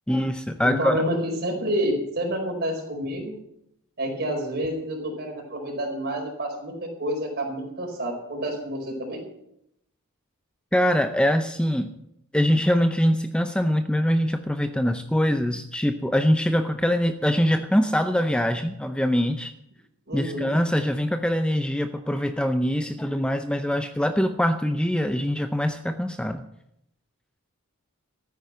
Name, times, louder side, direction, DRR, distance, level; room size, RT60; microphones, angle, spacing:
voice 1, 0.1-1.0 10.7-11.9 12.3-19.5 20.1-26.4, equal, 5° left, 8 dB, 0.6 m, -23 dB
voice 2, 0.6-3.3 4.0-9.2 20.1-20.5, equal, 50° right, 2 dB, 4.8 m, -28 dB
14.0 x 9.6 x 7.8 m, 0.78 s
head